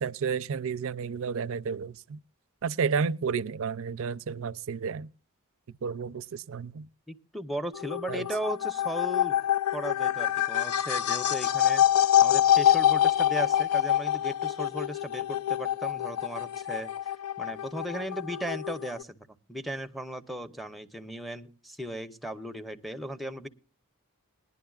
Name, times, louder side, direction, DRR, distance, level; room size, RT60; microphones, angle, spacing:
voice 1, 0.0-2.2 2.6-5.1 5.8-6.9 8.1-8.2, right 6 dB, 65° right, 0.4 m, -31 dB
voice 2, 7.1-9.4 9.7-16.9 17.4-23.5, equal, ahead, 0.7 m, -36 dB
sound 1, 7.7-19.0, left 11 dB, 85° left, 0.5 m, -26 dB
20.0 x 11.0 x 2.4 m
head